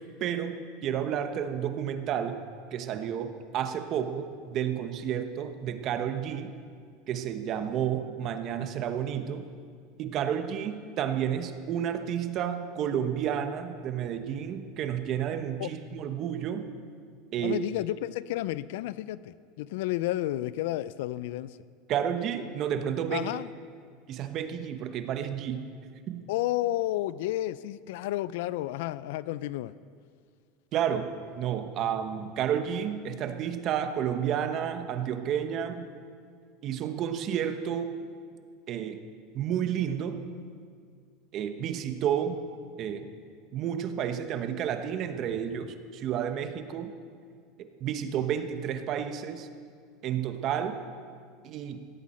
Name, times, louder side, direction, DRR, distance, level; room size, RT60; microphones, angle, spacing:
voice 1, 0.0-2.4 2.7-6.5 7.1-9.5 10.0-16.7 17.3-17.6 21.9-23.3 24.1-25.7 26.1-26.2 30.7-35.9 36.6-38.0 38.7-39.0 39.3-40.2 41.3-42.4 42.8-43.1 43.5-46.9 47.6-49.5 50.0-50.8 51.4-51.9, right 9 dB, 45° right, 8 dB, 1.0 m, -31 dB
voice 2, 17.4-21.6 23.1-23.5 26.3-29.7, left 15 dB, 75° left, 17 dB, 0.4 m, -31 dB
17.0 x 13.0 x 4.3 m, 2.1 s
supercardioid pair, 135°, 0 cm